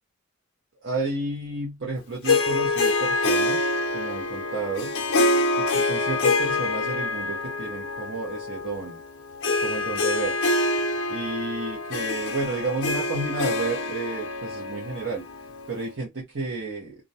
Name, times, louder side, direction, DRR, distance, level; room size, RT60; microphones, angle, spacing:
voice 1, 0.8-3.7 3.9-4.9 5.5-9.0 9.6-10.4 11.1-15.2 15.7-16.9, right 3 dB, 55° right, 0.7 m, -31 dB
Harp, 2.2-15.9, left 2 dB, 75° left, 0.5 m, -26 dB
2.4 x 2.0 x 2.7 m
head